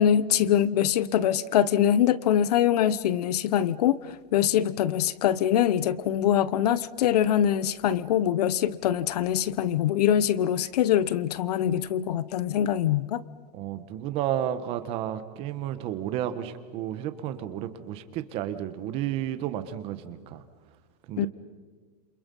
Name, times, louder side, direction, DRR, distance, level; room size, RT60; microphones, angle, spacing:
voice 1, 0.0-4.0 4.3-13.2 21.2-21.3, left 10 dB, 70° left, 1.0 m, -23 dB
voice 2, 13.5-20.4 21.1-21.3, right 11 dB, 25° right, 1.3 m, -32 dB
28.5 x 27.5 x 5.5 m
supercardioid pair, 180°, 21 cm